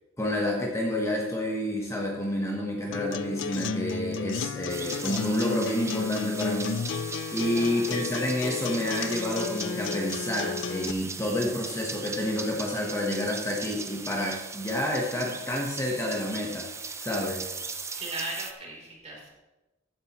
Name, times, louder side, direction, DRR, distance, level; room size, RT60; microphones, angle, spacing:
voice 1, 0.2-7.0 7.3-16.7 17.0-17.5, left 1 dB, 15° left, -1 dB, 1.2 m, -29 dB
Acoustic guitar, 2.9-10.9, left 5 dB, 65° left, 0.4 m, -33 dB
sound 1, 4.7-18.5, right 4 dB, 15° right, 0.6 m, -39 dB
voice 2, 7.4-8.0 18.0-19.3, right 2 dB, 35° right, -3 dB, 3.4 m, -38 dB
14.5 x 9.9 x 3.0 m, 1.1 s
head